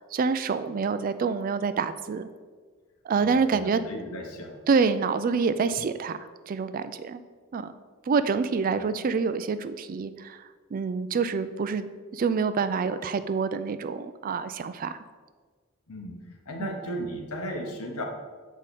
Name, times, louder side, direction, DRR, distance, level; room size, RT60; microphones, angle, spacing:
voice 1, 0.0-2.3 3.1-3.8 4.7-7.2 7.5-7.7 8.1-15.0 16.6-16.8, right 5 dB, 40° right, 12 dB, 0.3 m, -27 dB
voice 2, 3.2-4.6 15.9-16.2 16.4-18.0, equal, 80° left, 2 dB, 1.1 m, -35 dB
7.3 x 5.0 x 4.2 m, 1.5 s
head